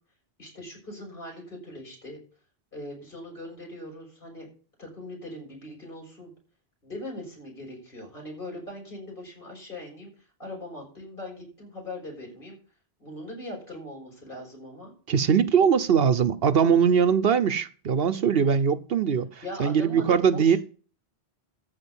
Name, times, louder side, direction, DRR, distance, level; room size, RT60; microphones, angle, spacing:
voice 1, 0.4-2.2 2.7-4.5 4.8-6.3 6.8-12.6 13.0-14.9 19.4-20.6, left 1 dB, 55° left, 7.2 m, -40 dB
voice 2, 15.1-20.6, right 7 dB, 70° right, 1.0 m, -21 dB
14.0 x 5.1 x 8.0 m
omnidirectional pair, 1.1 m